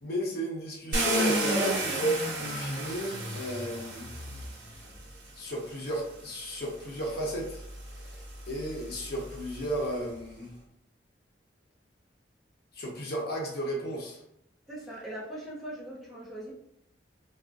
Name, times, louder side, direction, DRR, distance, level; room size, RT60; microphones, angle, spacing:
voice 1, 0.0-4.1 5.4-7.6 8.0-10.5 12.7-14.2, right 1 dB, 55° left, -2 dB, 0.8 m, -33 dB
Car, 0.9-5.0 6.0-6.1 6.6-9.9, right 1 dB, 60° right, 1.0 m, -33 dB
voice 2, 14.7-16.5, right 1 dB, ahead, -7 dB, 0.7 m, -40 dB
3.6 x 2.4 x 2.5 m, 0.76 s
head